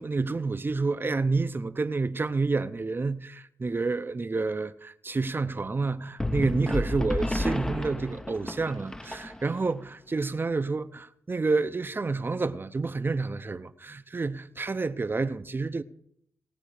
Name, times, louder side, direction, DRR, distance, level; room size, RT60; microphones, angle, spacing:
voice 1, 0.0-15.8, right 3 dB, 40° right, 0.7 m, -29 dB
sound 1, 6.2-9.7, left 1 dB, 10° left, 0.7 m, -31 dB
19.0 x 7.7 x 5.0 m
cardioid pair, 45°, 6 cm